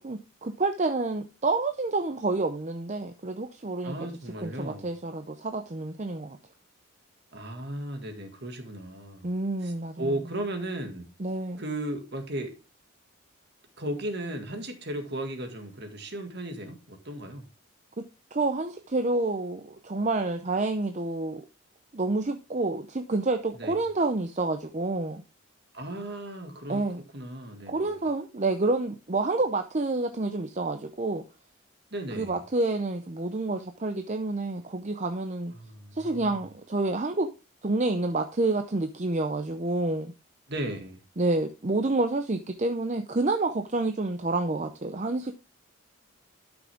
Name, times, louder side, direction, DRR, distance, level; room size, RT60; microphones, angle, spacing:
voice 1, 0.0-3.9 4.4-6.4 9.2-10.1 11.2-11.6 18.0-18.1 18.3-21.4 21.9-25.2 26.7-27.0 27.7-31.2 32.2-35.5 35.9-37.3 37.6-40.1 41.2-45.3, right 2 dB, 35° right, 0.6 m, -28 dB
voice 2, 3.8-4.9 7.3-9.3 9.6-11.1 11.6-12.6 13.8-17.5 23.6-23.8 25.7-26.8 27.1-27.9 31.9-32.4 35.5-36.3 40.5-41.0, right 1 dB, 50° right, 2.0 m, -35 dB
12.5 x 6.1 x 3.5 m
head